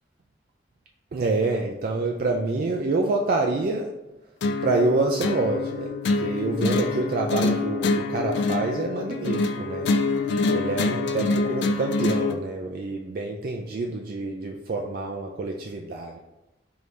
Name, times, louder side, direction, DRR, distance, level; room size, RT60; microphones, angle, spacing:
voice 1, 1.1-3.9 4.6-9.9 10.5-16.2, right 3 dB, 55° right, 1 dB, 0.3 m, -27 dB
sound 1, 4.4-12.4, left 3 dB, 70° left, 0.3 m, -25 dB
4.7 x 2.6 x 3.3 m, 0.98 s
head